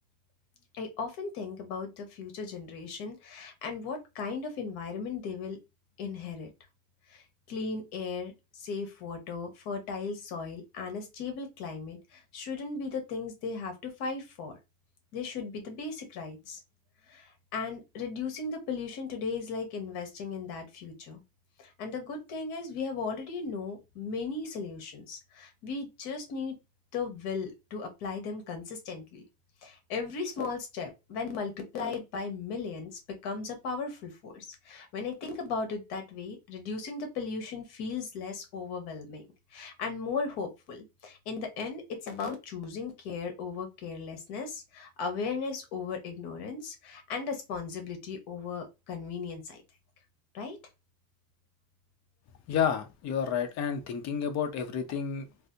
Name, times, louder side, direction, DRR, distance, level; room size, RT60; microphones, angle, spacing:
voice 1, 0.7-5.6 6.0-6.5 7.1-7.2 7.5-14.6 15.1-16.6 17.1-21.2 21.6-26.5 26.9-29.2 29.6-39.3 39.5-49.6 50.3-50.6, left 4 dB, 55° left, 1.2 m, -37 dB
voice 2, 52.5-55.3, left 7 dB, 35° left, 0.6 m, -30 dB
3.2 x 2.6 x 2.7 m
cardioid pair, 150°, 46 cm